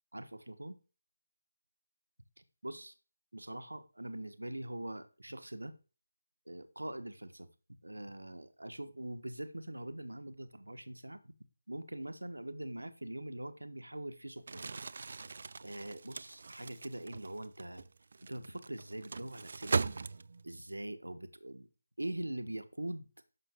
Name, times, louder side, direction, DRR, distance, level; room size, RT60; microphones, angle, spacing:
voice 1, 0.1-0.8 2.4-2.9 3.3-5.8 6.5-7.5 7.8-11.3 11.7-14.7 15.6-17.8 18.3-19.9 20.4-21.7 22.0-23.1, right 1 dB, 80° right, 1.2 m, -43 dB
Crumpling crinkling, 14.4-20.6, right 4 dB, 50° right, 0.4 m, -39 dB
11.0 x 6.5 x 3.7 m
figure-of-eight pair, 155°, 0 cm